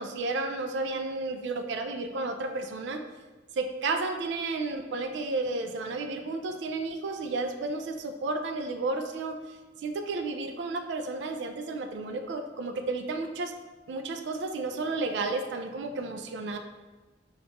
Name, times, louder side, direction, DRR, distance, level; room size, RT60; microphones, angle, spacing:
voice 1, 0.0-3.0 3.5-13.5 13.9-16.6, right 3 dB, 75° right, 5 dB, 0.4 m, -32 dB
5.1 x 2.4 x 2.9 m, 1.2 s
head